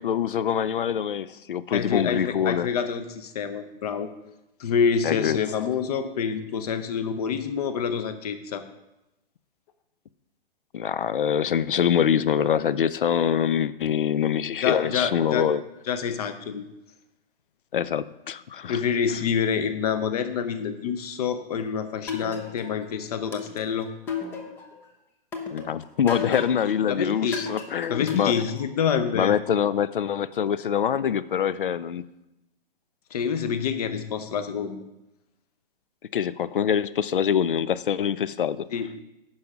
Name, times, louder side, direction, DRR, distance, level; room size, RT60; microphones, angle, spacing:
voice 1, 0.0-2.7 5.0-5.4 10.7-15.6 17.7-18.8 25.5-28.3 29.1-32.0 36.1-38.7, left 8 dB, 60° left, 17 dB, 0.5 m, -24 dB
voice 2, 1.7-4.1 4.6-8.6 14.6-15.5 15.9-16.6 18.7-23.9 26.3-27.4 27.9-29.4 33.1-34.8 38.7-38.9, left 7 dB, 40° left, 10 dB, 0.8 m, -27 dB
sound 1, 22.1-22.8 23.3-24.8 25.3-26.7 27.3-28.8, left 5 dB, 5° left, 0.4 m, -34 dB
9.5 x 5.6 x 5.0 m, 0.93 s
figure-of-eight pair, 120°, 30 cm